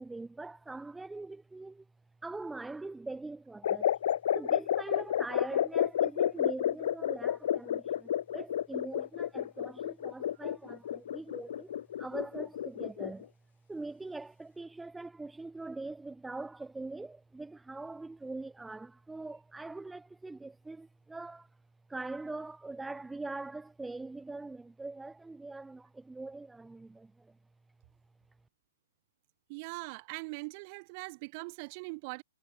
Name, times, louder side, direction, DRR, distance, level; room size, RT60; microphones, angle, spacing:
voice 1, 0.0-1.8 2.2-3.9 4.3-11.7 12.0-13.3 13.7-21.5 21.9-27.3, right 3 dB, 5° right, 5.0 m, -43 dB
sound 1, 3.6-13.2, left 10 dB, 50° left, 1.0 m, -31 dB
voice 2, 29.5-32.2, right 29 dB, 30° right, 1.7 m, -41 dB
figure-of-eight pair, 125°, 0 cm